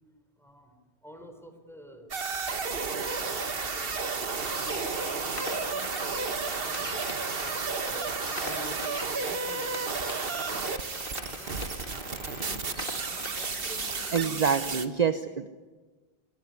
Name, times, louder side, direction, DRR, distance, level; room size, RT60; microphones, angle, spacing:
voice 1, 0.4-0.7 1.0-2.1 2.5-4.1 4.5-7.1 7.4-9.8 10.3-10.6 11.3-11.6 11.9-12.7 13.0-14.7, left 1 dB, ahead, 6 dB, 4.2 m, -49 dB
sound 1, 2.1-14.9, right 4 dB, 65° right, 1.6 m, -32 dB
sound 2, 2.3-14.1, equal, 30° right, 5.5 m, -52 dB
sound 3, 4.3-14.3, left 2 dB, 60° left, 2.4 m, -43 dB
voice 2, 14.1-15.7, right 6 dB, 45° right, 10 dB, 1.0 m, -27 dB
26.5 x 22.0 x 9.7 m, 1.3 s
omnidirectional pair, 1.0 m